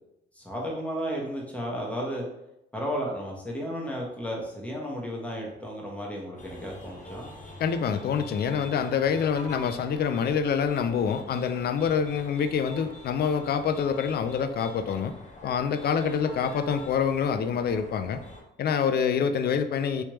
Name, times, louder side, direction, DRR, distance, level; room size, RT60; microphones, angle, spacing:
voice 1, 0.4-2.2 2.7-7.3, equal, 5° left, -2 dB, 1.1 m, -33 dB
sound 1, 6.4-18.4, equal, 40° left, 0.9 m, -44 dB
voice 2, 7.6-15.1 15.4-18.2 18.6-20.0, left 7 dB, 55° left, 9 dB, 0.4 m, -26 dB
3.2 x 3.1 x 3.0 m, 0.85 s
cardioid pair, 90°, 20 cm